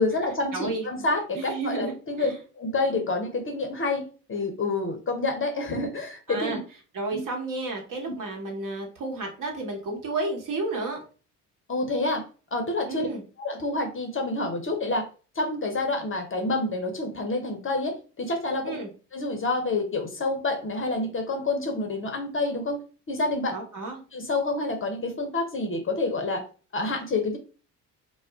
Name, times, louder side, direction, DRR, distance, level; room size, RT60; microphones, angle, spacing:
voice 1, 0.0-6.6 7.1-7.2 11.7-12.2 12.5-13.1 13.4-15.1 15.3-18.8 19.1-22.8 23.1-23.5 24.1-26.4 26.7-27.4, left 2 dB, 25° left, 3 dB, 0.7 m, -28 dB
voice 2, 0.5-1.0 1.4-2.3 6.3-6.6 6.9-11.0 12.9-13.2 18.6-18.9 23.5-24.0, right 3 dB, 45° right, 1 dB, 1.2 m, -32 dB
2.3 x 2.1 x 3.4 m, 0.37 s
hypercardioid pair, 55°, 45 cm